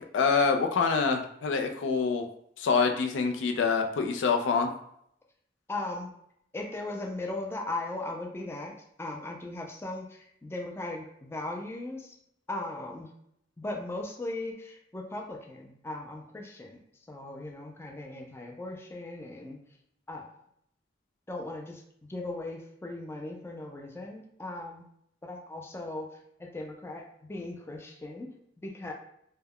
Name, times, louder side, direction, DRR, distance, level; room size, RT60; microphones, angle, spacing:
voice 1, 0.1-2.2 2.6-4.7, left 5 dB, 85° left, 4 dB, 0.4 m, -26 dB
voice 2, 5.7-6.1 6.5-12.2 12.5-13.1 13.6-16.8 17.1-19.6 20.1-20.3 21.3-24.8 25.2-26.1 26.4-28.9, left 2 dB, 15° left, 0 dB, 0.4 m, -38 dB
2.2 x 2.1 x 3.5 m, 0.71 s
head